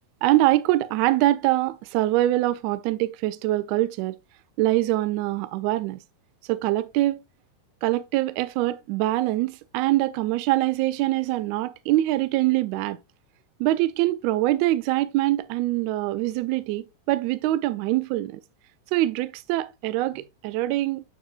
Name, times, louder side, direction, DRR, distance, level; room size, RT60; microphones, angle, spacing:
voice 1, 0.2-4.1 4.6-6.0 6.5-7.2 7.8-13.0 13.6-18.4 18.9-21.0, right 16 dB, 45° right, 0.5 m, -24 dB
7.1 x 7.0 x 2.5 m
figure-of-eight pair, 90°, 0 cm